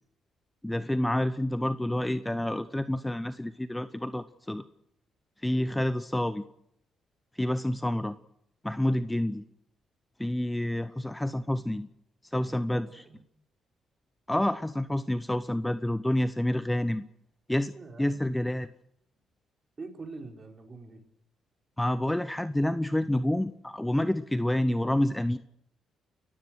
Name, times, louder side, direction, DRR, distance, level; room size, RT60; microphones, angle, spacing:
voice 1, 0.6-4.6 5.4-6.4 7.3-8.2 8.6-9.4 10.2-11.9 12.2-13.0 14.3-17.0 17.5-17.7 18.0-18.7 21.8-25.4, left 1 dB, 10° left, 13 dB, 0.8 m, -28 dB
voice 2, 12.3-13.2 17.7-18.1 19.8-21.0, right 3 dB, 35° right, 4 dB, 4.3 m, -45 dB
29.5 x 15.0 x 6.4 m, 0.77 s
cardioid pair, 90°, 0 cm